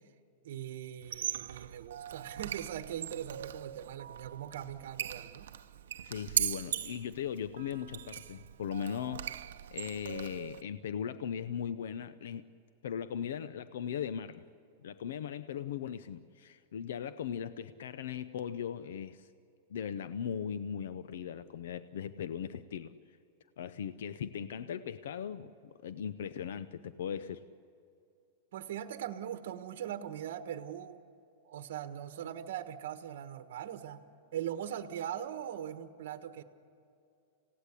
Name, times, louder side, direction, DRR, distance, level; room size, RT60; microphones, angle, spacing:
voice 1, 0.4-5.5 28.5-31.0 31.4-34.0 34.3-36.4, right 10 dB, 60° right, 9 dB, 1.2 m, -40 dB
Squeak, 1.0-10.6, right 10 dB, 85° right, 0.7 m, -39 dB
voice 2, 6.0-9.3 9.7-12.5 12.8-14.4 14.8-19.3 19.7-22.9 23.6-27.4, left 8 dB, 75° left, 13 dB, 0.7 m, -38 dB
27.0 x 17.0 x 8.4 m, 2.5 s
supercardioid pair, 170°, 0 cm